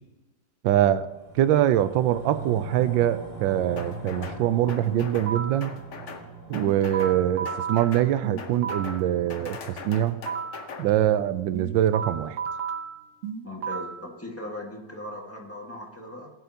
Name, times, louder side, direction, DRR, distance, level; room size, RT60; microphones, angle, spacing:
voice 1, 0.6-1.1 1.3-5.7 6.5-10.2 10.8-12.4, right 12 dB, 85° right, 13 dB, 1.3 m, -23 dB
sound 1, 1.0-11.6 12.0-12.1, right 3 dB, 20° right, 3.5 m, -42 dB
sound 2, 3.8-4.4 4.7-5.3 5.6-6.2 6.5-7.2 7.4-8.1 8.4-9.0 9.3-10.8, left 5 dB, 50° left, 1.0 m, -40 dB
sound 3, 4.9-5.7 6.5-9.1 9.9-10.7 11.5-14.1, right 7 dB, 55° right, 0.9 m, -33 dB
voice 2, 13.4-16.3, left 1 dB, 10° left, -1 dB, 1.4 m, -38 dB
17.0 x 9.3 x 2.8 m, 1.1 s
omnidirectional pair, 2.0 m